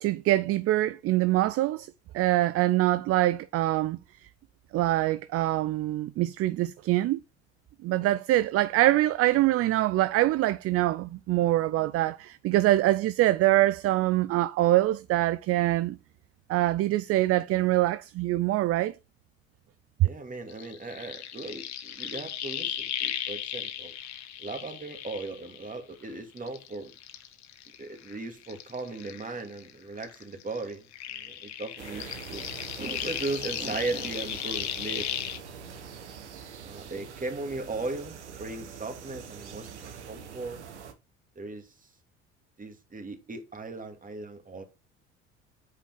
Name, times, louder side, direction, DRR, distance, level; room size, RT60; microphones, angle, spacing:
voice 1, 0.0-4.3 4.7-7.2 7.8-16.0 16.5-19.0 20.0-20.1, right 16 dB, 45° right, 0.5 m, -24 dB
voice 2, 20.0-23.9 24.4-26.9 27.8-30.9 31.1-32.5 32.8-35.1 36.6-40.6 41.4-41.7 42.6-44.6, right 3 dB, 25° right, 2.4 m, -37 dB
sound 1, 20.5-26.0 26.4-29.7 30.0-35.4, left 10 dB, 55° left, 1.3 m, -36 dB
sound 2, 31.8-40.9, right 6 dB, 85° right, 1.3 m, -44 dB
7.7 x 5.0 x 4.5 m
hypercardioid pair, 60°, 34 cm